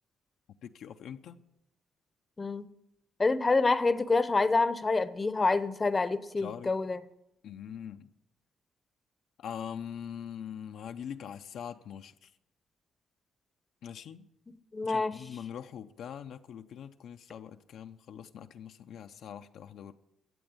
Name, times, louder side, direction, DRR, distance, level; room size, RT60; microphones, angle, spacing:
voice 1, 0.6-1.4 6.4-6.7 7.4-8.1 9.4-12.3 13.8-14.3 14.8-19.9, left 8 dB, 70° left, 6 dB, 0.7 m, -43 dB
voice 2, 3.2-7.0 14.7-15.2, left 3 dB, 25° left, 13 dB, 0.8 m, -27 dB
12.5 x 8.0 x 9.5 m, 0.87 s
cardioid pair, 90°, 0 cm